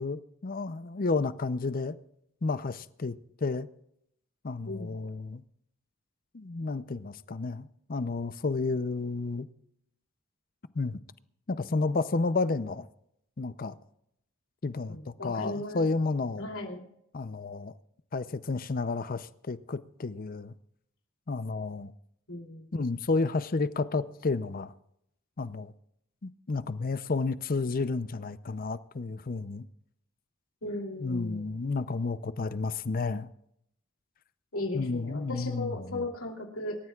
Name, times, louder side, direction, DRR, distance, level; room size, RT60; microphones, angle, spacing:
voice 1, 0.0-2.0 2.4-3.2 3.4-3.7 4.4-5.4 6.3-9.5 10.7-11.0 11.5-12.9 13.4-13.8 14.6-16.5 17.1-17.7 18.1-20.5 21.3-21.9 22.7-24.7 25.4-25.7 26.2-29.7 31.0-33.3 34.7-36.0, left 3 dB, 45° left, 0.6 m, -31 dB
voice 2, 4.7-5.0 14.9-15.8 16.4-16.8 22.3-22.7 30.6-31.5 34.5-36.8, left 2 dB, 90° left, 3.1 m, -36 dB
26.0 x 14.0 x 2.4 m
head